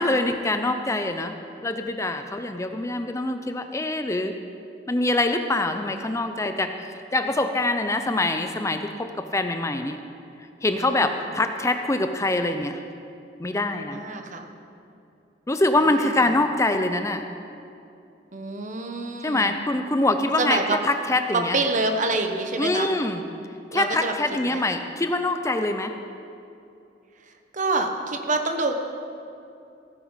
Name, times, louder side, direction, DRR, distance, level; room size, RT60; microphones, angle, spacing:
voice 1, 0.0-1.3 1.6-4.4 4.9-6.7 7.1-10.0 10.6-12.8 13.4-14.0 15.5-17.2 19.2-20.6 20.8-21.6 22.6-23.2 23.7-25.9, left 2 dB, 15° left, 7 dB, 0.5 m, -24 dB
voice 2, 10.7-11.2 13.9-14.5 15.8-16.3 18.3-19.6 20.4-20.8 21.3-22.9 23.7-24.1 24.4-24.6 27.5-28.8, right 3 dB, 45° right, 5 dB, 1.1 m, -27 dB
16.0 x 9.7 x 5.7 m, 2.7 s
head